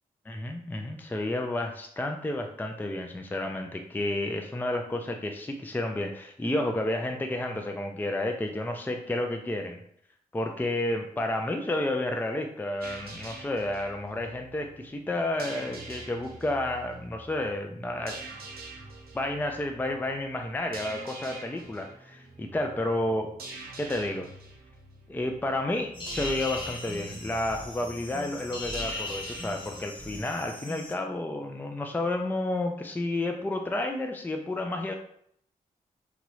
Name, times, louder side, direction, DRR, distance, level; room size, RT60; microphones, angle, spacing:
voice 1, 0.3-9.8 10.3-18.2 19.1-23.3 23.8-24.3 25.1-34.9, left 1 dB, 10° left, 3 dB, 0.4 m, -31 dB
sound 1, 12.8-29.8, right 3 dB, 80° right, 0.6 m, -45 dB
sound 2, 25.9-30.9, left 2 dB, 30° left, 0.9 m, -38 dB
3.0 x 2.4 x 3.1 m, 0.68 s
cardioid pair, 50°, 15 cm